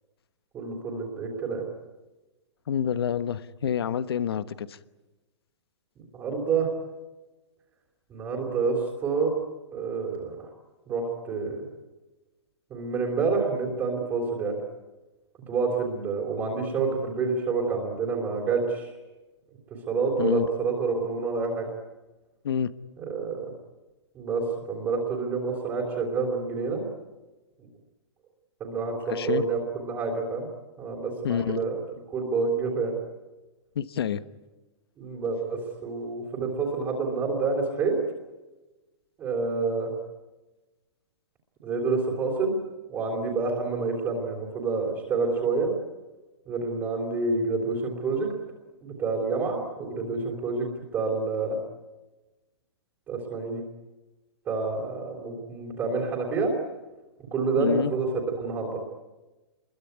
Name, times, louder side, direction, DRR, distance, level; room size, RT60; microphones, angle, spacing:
voice 1, 0.5-1.7 6.1-6.7 8.1-9.3 9.7-10.5 10.9-11.6 12.7-14.6 15.5-18.9 19.9-21.7 23.1-23.4 24.2-26.8 28.6-30.5 30.8-31.8 32.1-32.9 35.0-37.9 39.2-39.9 41.6-42.6 42.9-45.7 46.5-48.3 48.8-50.7 50.9-51.6 53.1-53.6 54.5-56.5 57.3-58.1 58.4-58.8, right 4 dB, 10° right, -3 dB, 3.5 m, -28 dB
voice 2, 2.7-4.8 20.2-20.5 22.4-22.7 29.0-29.4 31.2-31.6 33.7-34.2 57.6-57.9, left 8 dB, 55° left, 14 dB, 1.2 m, -27 dB
27.5 x 22.5 x 9.6 m, 1.1 s
hypercardioid pair, 180°, 15 cm